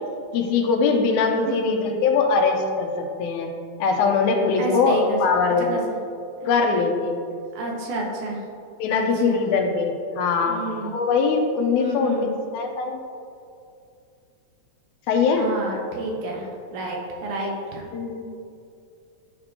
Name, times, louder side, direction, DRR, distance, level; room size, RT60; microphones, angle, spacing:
voice 1, 0.3-2.9 3.2-3.5 3.8-5.8 6.5-7.2 8.8-12.3 12.5-13.0 15.1-15.5 17.9-18.2, left 4 dB, 85° left, 3 dB, 2.1 m, -21 dB
voice 2, 1.5-1.9 4.6-5.2 5.6-5.8 7.6-8.4 8.9-9.5 10.5-11.0 11.8-12.4 15.4-17.8, right 1 dB, 85° right, -1 dB, 2.3 m, -30 dB
12.0 x 4.3 x 2.7 m, 2.5 s
omnidirectional pair, 3.4 m